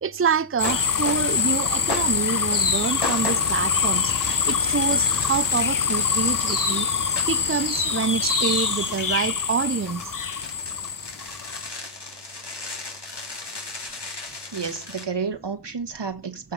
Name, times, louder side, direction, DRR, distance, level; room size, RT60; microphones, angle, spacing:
voice 1, 0.0-4.1 4.5-10.1 14.3-14.4, right 6 dB, 35° right, 0.6 m, -27 dB
sound 1, 0.6-1.5 1.9-15.0, left 3 dB, 75° left, 2.6 m, -33 dB
sound 2, 0.6-11.7, left 6 dB, 55° left, 0.7 m, -25 dB
voice 2, 14.5-16.5, right 5 dB, 90° right, 1.7 m, -31 dB
15.0 x 5.8 x 5.6 m
wide cardioid pair, 55°, 41 cm